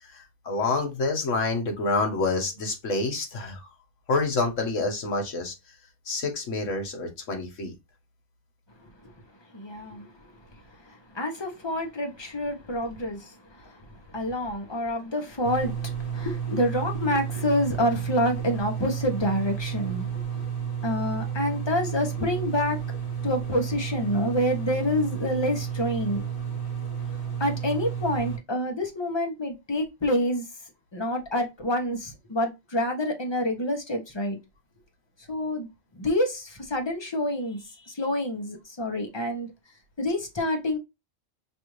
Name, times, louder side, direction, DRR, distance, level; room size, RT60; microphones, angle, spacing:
voice 1, 0.1-3.6 4.1-5.5 6.1-7.7, left 3 dB, 75° left, 1.5 m, -27 dB
voice 2, 9.5-10.3 10.8-20.1 20.8-22.8 23.2-26.2 27.4-30.5 30.9-34.4 35.3-35.7 35.9-39.5 40.0-40.8, left 1 dB, 25° left, 0.8 m, -28 dB
sound 1, 15.4-28.4, right 8 dB, 45° left, 1.7 m, -32 dB
5.1 x 2.6 x 3.1 m
omnidirectional pair, 1.3 m